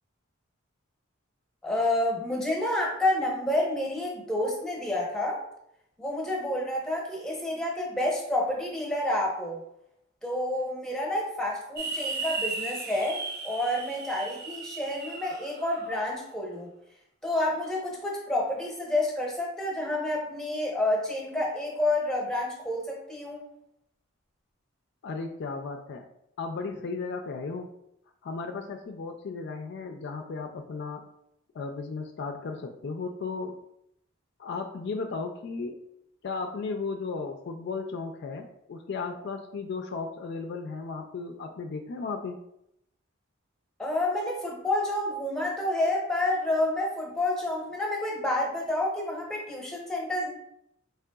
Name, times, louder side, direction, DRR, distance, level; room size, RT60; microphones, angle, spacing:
voice 1, 1.6-5.4 6.0-9.6 10.2-16.7 17.2-23.4 43.8-50.3, left 1 dB, 5° left, -2 dB, 0.8 m, -29 dB
sound 1, 11.8-15.9, right 3 dB, 50° right, 0.6 m, -36 dB
voice 2, 25.0-26.0 26.4-27.7 28.2-31.1 31.5-33.6 34.4-35.8 36.2-42.4, left 4 dB, 55° left, 4 dB, 0.3 m, -35 dB
3.7 x 3.2 x 2.2 m, 0.77 s
head